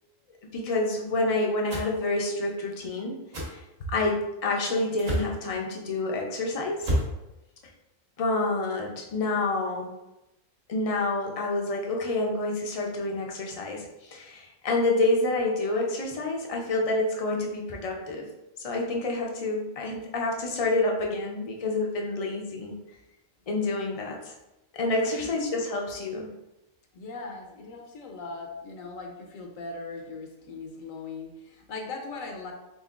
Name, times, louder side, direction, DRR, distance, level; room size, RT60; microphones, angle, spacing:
voice 1, 0.5-3.2 3.5-3.6 3.9-6.9 8.2-9.9 10.7-18.3 18.6-22.7 23.5-24.3 24.7-26.3, left 2 dB, 55° left, 0 dB, 0.4 m, -28 dB
sound 1, 1.7-1.9 3.3-3.5 5.0-5.3 6.8-7.1, equal, 80° right, 1.6 m, -28 dB
voice 2, 25.1-25.4 26.9-32.5, left 3 dB, 80° left, 2 dB, 1.1 m, -39 dB
4.0 x 3.6 x 2.4 m, 0.93 s
omnidirectional pair, 1.4 m